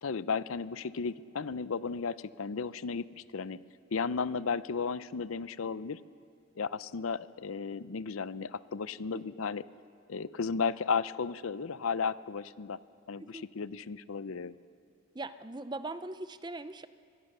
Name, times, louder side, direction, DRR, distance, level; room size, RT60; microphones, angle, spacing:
voice 1, 0.0-3.6 3.9-6.0 6.6-9.6 10.1-12.8 13.1-14.5, left 5 dB, 80° left, 16 dB, 0.6 m, -34 dB
voice 2, 15.1-16.9, right 2 dB, 20° right, 12 dB, 0.6 m, -40 dB
23.5 x 21.5 x 6.7 m, 2.4 s
head